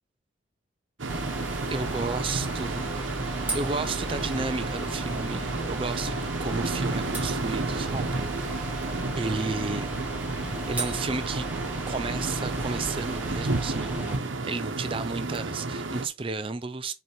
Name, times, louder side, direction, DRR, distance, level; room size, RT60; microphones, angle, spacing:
sound 1, 1.0-16.1, right 3 dB, 80° right, 1.0 m, -32 dB
sound 2, 1.1-14.2, right 1 dB, 10° right, 1.4 m, -35 dB
voice 1, 1.7-2.9 3.2-8.2 8.6-10.0 10.4-11.5 11.9-16.9, right 3 dB, 25° right, 0.4 m, -33 dB
5.6 x 4.5 x 4.5 m
head